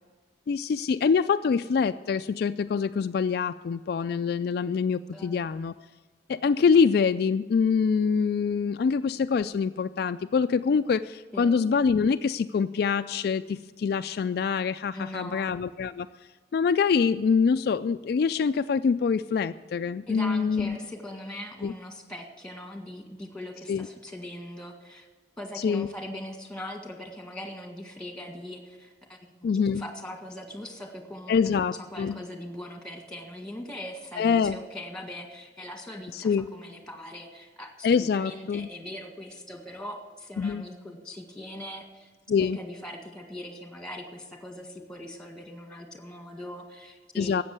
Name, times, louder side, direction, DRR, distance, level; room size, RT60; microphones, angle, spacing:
voice 1, 0.5-5.7 6.3-16.1 16.5-20.8 21.6-21.7 23.7-23.9 25.6-25.9 29.4-29.8 31.3-32.2 34.2-34.6 36.1-36.5 37.8-38.7 40.4-40.6 42.3-42.6 47.1-47.4, left 5 dB, 60° left, 10 dB, 0.3 m, -25 dB
voice 2, 14.9-15.5 20.1-25.1 25.4-31.4 31.9-42.1 42.4-47.4, left 1 dB, 5° left, 3 dB, 1.7 m, -41 dB
13.0 x 8.2 x 8.0 m, 1.3 s
head